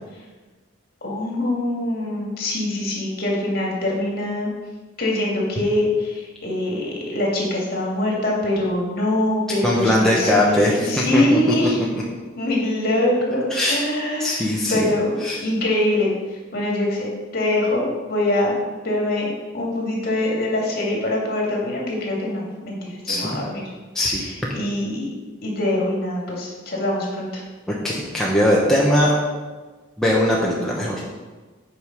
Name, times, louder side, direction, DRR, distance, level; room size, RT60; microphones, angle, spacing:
voice 1, 1.0-4.5 5.0-11.8 12.4-16.1 16.5-19.3 19.5-23.6 24.2-25.1 25.4-27.4, left 1 dB, 50° left, -3 dB, 2.2 m, -23 dB
voice 2, 9.6-11.4 13.3-13.8 14.2-14.9 15.2-15.4 23.1-23.3 23.9-24.2 27.8-29.1 30.0-31.1, left 1 dB, ahead, -5 dB, 1.0 m, -20 dB
8.8 x 4.9 x 5.2 m, 1.3 s
head